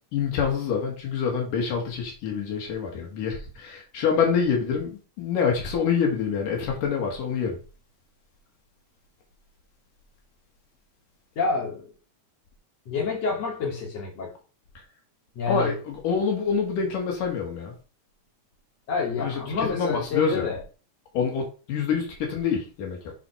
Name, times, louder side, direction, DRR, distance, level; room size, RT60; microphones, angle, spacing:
voice 1, 0.1-7.6 15.5-17.7 19.2-20.5 21.1-23.1, left 6 dB, 90° left, 3.5 m, -26 dB
voice 2, 11.4-11.9 12.9-14.3 15.4-15.7 18.9-20.6, left 4 dB, 55° left, 4.0 m, -28 dB
7.8 x 4.5 x 5.7 m
omnidirectional pair, 3.6 m